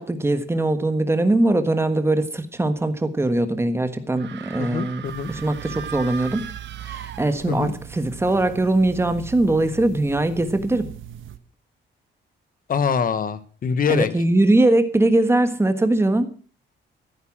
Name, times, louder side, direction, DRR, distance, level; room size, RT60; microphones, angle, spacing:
voice 1, 0.0-6.4 6.8-10.9 13.9-16.3, right 2 dB, 15° right, 10 dB, 1.5 m, -21 dB
sound 1, 4.1-7.8, right 8 dB, 70° right, 1.4 m, -38 dB
voice 2, 4.6-5.3 7.5-7.7 12.7-14.1, left 6 dB, 45° left, 14 dB, 1.4 m, -24 dB
sound 2, 5.0-11.4, right 11 dB, 90° right, 1.6 m, -40 dB
15.0 x 9.7 x 7.3 m, 0.42 s
wide cardioid pair, 160°, 20 cm